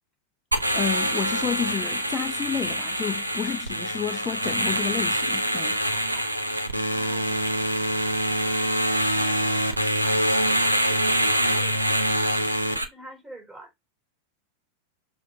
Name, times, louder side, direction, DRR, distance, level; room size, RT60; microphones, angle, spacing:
sound 1, 0.5-12.8, right 1 dB, 85° right, 1.2 m, -25 dB
voice 1, 0.7-5.8, left 7 dB, 20° left, 0.4 m, -30 dB
voice 2, 5.9-6.3 6.9-7.5 12.7-13.7, right 1 dB, 15° right, 4.4 m, -48 dB
7.4 x 2.6 x 4.8 m
figure-of-eight pair, 90°, 0 cm